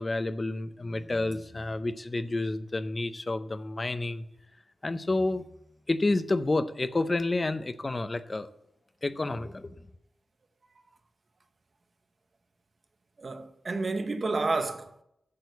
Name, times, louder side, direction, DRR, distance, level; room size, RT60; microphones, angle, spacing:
voice 1, 0.0-4.2 4.8-5.4 5.9-8.5 9.0-9.8, left 2 dB, 25° left, 0.6 m, -29 dB
voice 2, 13.2-15.0, right 3 dB, 40° right, 0.9 m, -30 dB
8.6 x 6.3 x 8.1 m
wide cardioid pair, 145°, 0 cm